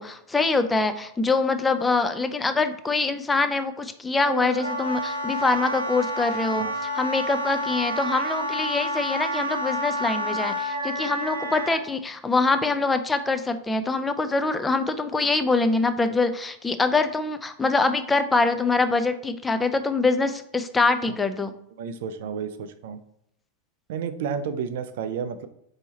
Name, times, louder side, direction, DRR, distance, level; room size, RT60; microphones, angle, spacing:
voice 1, 0.0-21.5, left 3 dB, 10° left, 9 dB, 0.4 m, -24 dB
Wind instrument woodwind instrument, 4.2-11.8, equal, 75° right, 0.9 m, -29 dB
voice 2, 21.8-23.0 23.9-25.5, right 7 dB, 55° right, 10 dB, 0.4 m, -31 dB
4.5 x 2.8 x 4.2 m, 0.75 s
figure-of-eight pair, 90°, 0 cm